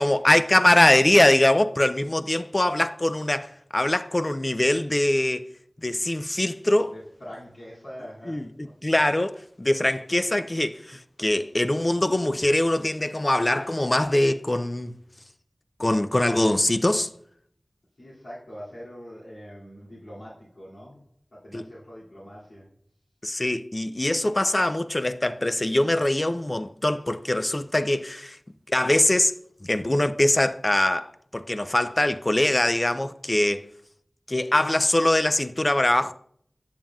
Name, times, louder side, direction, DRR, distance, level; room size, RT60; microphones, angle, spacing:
voice 1, 0.0-5.4 5.8-6.9 8.3-14.9 15.8-17.1 21.5-21.7 23.2-28.4 28.7-29.3 29.6-33.7 34.3-36.1, left 1 dB, 35° left, 0.4 m, -22 dB
voice 2, 6.9-9.0 18.0-21.0 21.3-22.7, equal, 85° left, 2.5 m, -43 dB
8.8 x 7.2 x 2.4 m
wide cardioid pair, 50°, 0 cm